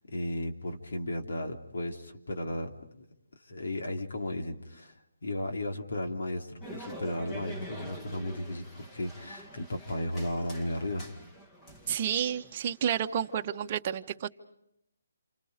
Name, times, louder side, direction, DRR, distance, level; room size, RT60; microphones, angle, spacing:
voice 1, 0.1-3.0 3.4-4.9 5.2-11.1, left 1 dB, 65° left, 2 dB, 3.2 m, -35 dB
sound 1, 6.6-13.7, right 1 dB, 15° left, 1.9 m, -46 dB
voice 2, 11.9-14.3, right 9 dB, 30° right, 6 dB, 1.1 m, -30 dB
29.0 x 28.0 x 5.1 m, 0.79 s
hypercardioid pair, 160°, 0 cm